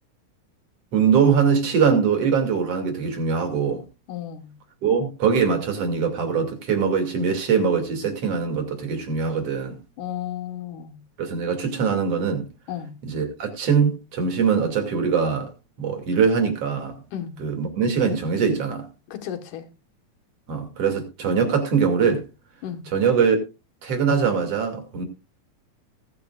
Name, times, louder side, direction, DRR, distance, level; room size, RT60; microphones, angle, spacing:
voice 1, 0.9-3.8 4.8-9.8 11.2-12.5 13.0-15.5 15.8-17.0 17.4-18.9 20.5-22.2 22.9-23.4 23.8-25.0, right 6 dB, 50° right, 3.4 m, -22 dB
voice 2, 4.1-4.5 10.0-11.0 12.7-12.9 17.1-17.4 19.1-19.7 22.6-22.9, left 10 dB, 75° left, 2.9 m, -33 dB
19.5 x 9.4 x 2.5 m
omnidirectional pair, 3.7 m